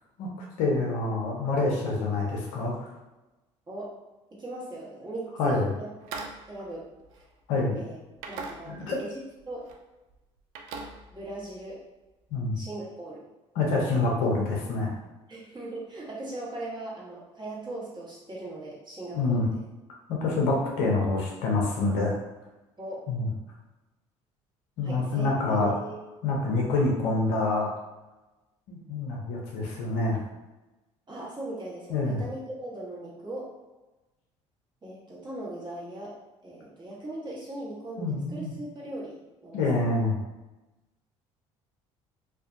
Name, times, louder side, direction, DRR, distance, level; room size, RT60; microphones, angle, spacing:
voice 1, 0.6-2.9 5.4-5.7 7.5-7.8 8.7-9.0 12.3-12.6 13.5-14.9 19.1-19.4 20.1-22.2 23.1-23.3 24.8-25.7 26.2-27.7 28.7-30.2 31.9-32.2 38.0-38.5 39.5-40.1, left 3 dB, 70° left, -1 dB, 0.7 m, -26 dB
voice 2, 4.4-5.9 6.5-6.9 7.1-7.2 7.7-8.0 8.3-9.2 9.5-9.6 11.1-11.8 12.5-13.3 15.3-19.6 22.8-23.0 24.8-26.0 31.1-33.5 34.8-36.2 36.4-39.6, right 1 dB, 30° right, -6 dB, 1.2 m, -39 dB
sound 1, 6.0-7.7 8.2-9.1 9.4-9.8 10.1-11.7, right 4 dB, 70° right, 0.4 m, -42 dB
2.5 x 2.3 x 2.6 m, 1.1 s
hypercardioid pair, 60°, 15 cm